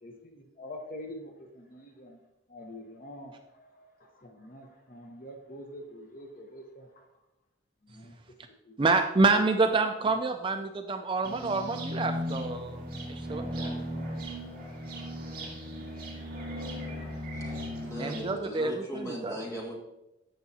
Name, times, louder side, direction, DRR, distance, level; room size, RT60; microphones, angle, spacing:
voice 1, 0.0-2.2 2.5-7.1 7.8-8.1 8.7-8.8 10.0-10.1, left 1 dB, 40° left, 3 dB, 0.9 m, -46 dB
voice 2, 8.8-12.8 13.1-13.7 18.0-19.4, right 3 dB, 25° right, 6 dB, 0.3 m, -27 dB
sound 1, 11.2-18.3, equal, 45° right, 2.5 m, -37 dB
voice 3, 17.3-19.7, equal, 15° left, -3 dB, 1.8 m, -39 dB
14.5 x 5.5 x 2.7 m, 0.94 s
head